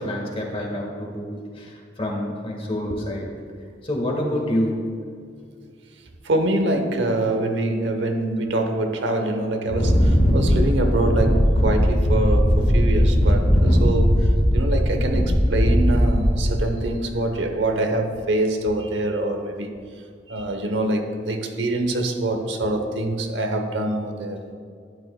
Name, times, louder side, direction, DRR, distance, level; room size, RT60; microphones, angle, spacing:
voice 1, 0.0-3.2 3.8-4.9, left 1 dB, 35° left, 0 dB, 1.5 m, -27 dB
voice 2, 6.2-14.2 14.5-19.7 20.3-24.4, right 1 dB, 85° right, 5 dB, 0.9 m, -24 dB
Wind, 9.7-16.8, equal, 55° left, 1.5 m, -18 dB
12.0 x 8.9 x 2.2 m, 2.2 s
head